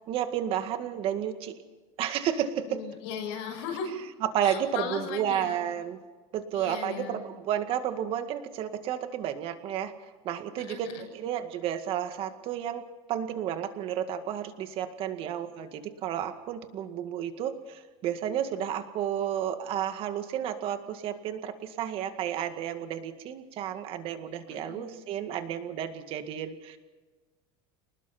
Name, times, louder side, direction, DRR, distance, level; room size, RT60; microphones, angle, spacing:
voice 1, 0.1-1.5 2.0-2.8 4.2-6.0 6.3-9.9 10.2-26.8, right 10 dB, 40° right, 8 dB, 2.0 m, -32 dB
voice 2, 2.7-4.0 4.4-5.6 6.5-7.2 10.6-11.1 15.2-15.3 24.5-24.9, left 6 dB, 80° left, -2 dB, 6.7 m, -37 dB
29.5 x 20.0 x 4.4 m, 1.3 s
cardioid pair, 155°, 14 cm